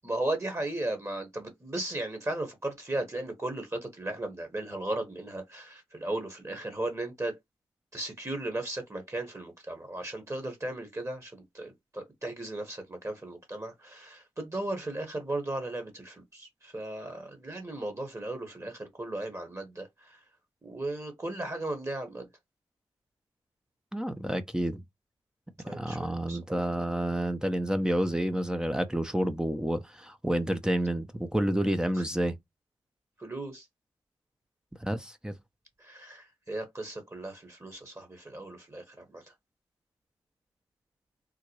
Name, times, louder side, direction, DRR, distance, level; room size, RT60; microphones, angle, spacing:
voice 1, 0.0-7.4 7.9-20.2 20.6-22.3 25.6-26.6 33.2-33.6 35.8-39.2, right 2 dB, 30° right, 1.3 m, -36 dB
voice 2, 23.9-24.8 25.6-32.3 34.8-35.4, right 1 dB, 5° right, 0.6 m, -29 dB
3.7 x 2.2 x 3.1 m
supercardioid pair, 40°, 11 cm